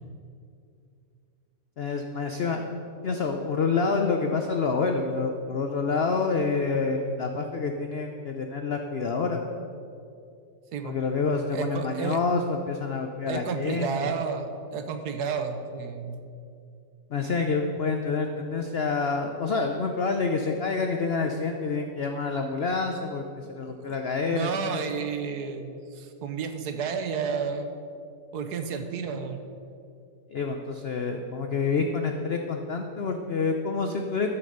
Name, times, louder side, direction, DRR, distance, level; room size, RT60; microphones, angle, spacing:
voice 1, 1.8-2.7 3.0-9.4 10.8-14.2 17.1-24.8 30.3-34.3, left 4 dB, 70° left, 4 dB, 0.6 m, -28 dB
voice 2, 11.5-12.2 13.3-16.2 23.6-24.0 24.3-27.7 28.3-29.4, right 6 dB, 70° right, 7 dB, 1.3 m, -31 dB
13.0 x 6.0 x 6.6 m, 2.5 s
omnidirectional pair, 1.9 m